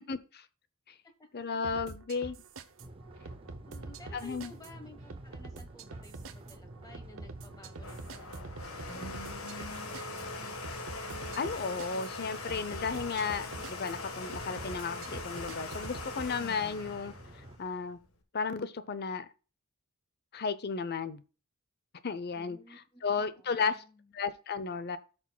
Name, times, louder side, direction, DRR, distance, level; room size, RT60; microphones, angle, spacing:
voice 1, 0.1-0.4 0.9-1.0 1.3-2.4 4.1-4.5 11.4-17.1 17.6-18.0 18.3-19.3 20.3-21.2 22.0-22.6 23.0-23.8 24.1-25.0, left 5 dB, 50° left, 0.7 m, -34 dB
sound 1, 1.6-16.3, right 3 dB, 65° right, 0.8 m, -46 dB
sound 2, 2.8-17.6, right 1 dB, 25° right, 0.7 m, -50 dB
voice 2, 3.7-10.5 22.3-24.1, left 2 dB, 15° left, 1.3 m, -55 dB
Domestic sounds home sounds, 7.5-18.2, left 3 dB, 75° left, 1.6 m, -42 dB
13.0 x 6.2 x 2.3 m
head